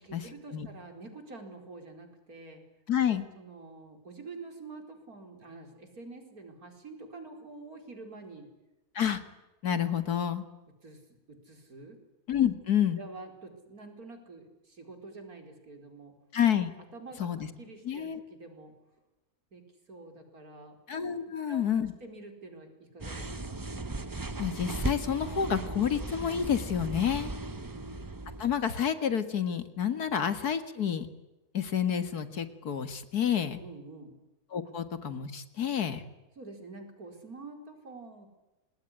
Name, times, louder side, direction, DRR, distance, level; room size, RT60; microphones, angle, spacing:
voice 1, 0.0-2.6 3.4-8.5 10.8-11.0 11.3-12.0 13.0-16.2 16.9-17.3 17.6-18.7 19.5-19.6 19.9-20.8 21.3-21.7 22.0-23.6 33.6-34.2 34.7-34.8 36.4-38.3, right 3 dB, 70° right, 5 dB, 5.1 m, -47 dB
voice 2, 2.9-3.3 8.9-9.2 9.6-10.4 12.3-13.0 16.3-16.7 17.2-17.5 17.9-18.2 20.9-21.9 24.4-27.3 28.4-31.1 31.5-33.6 34.5-36.0, left 8 dB, 75° left, 11 dB, 2.3 m, -29 dB
sound 1, 23.0-28.8, right 2 dB, 20° right, 0.7 m, -37 dB
27.0 x 20.5 x 9.9 m, 1.0 s
omnidirectional pair, 1.6 m